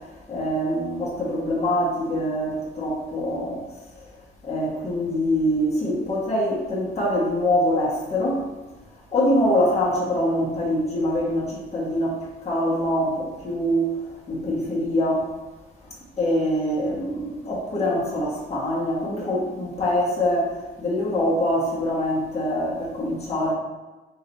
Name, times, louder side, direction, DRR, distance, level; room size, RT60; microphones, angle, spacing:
voice 1, 0.3-3.6 4.4-8.4 9.1-12.2 12.4-13.9 14.3-15.2 16.2-23.5, left 1 dB, 35° left, -6 dB, 1.4 m, -24 dB
3.8 x 3.4 x 4.0 m, 1.2 s
cardioid pair, 90°, 20 cm